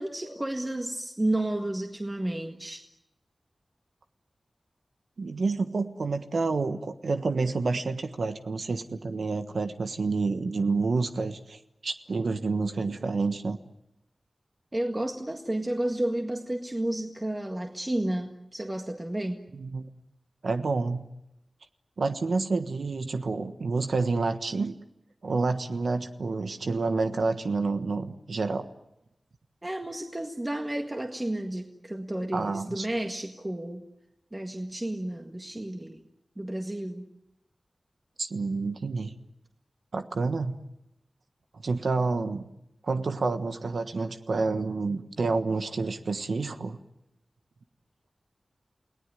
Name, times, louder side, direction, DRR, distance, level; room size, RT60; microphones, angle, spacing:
voice 1, 0.0-2.8 14.7-19.4 29.6-33.8 34.3-36.0 36.4-37.1, right 1 dB, 20° right, 3 dB, 1.8 m, -31 dB
voice 2, 5.2-13.6 19.5-19.8 20.4-21.1 22.0-24.7 25.2-28.7 32.3-32.9 38.2-39.1 39.9-40.6 41.5-42.5 42.8-46.8, right 3 dB, 85° right, 8 dB, 1.4 m, -29 dB
30.0 x 18.5 x 9.2 m, 0.89 s
wide cardioid pair, 85°, 0 cm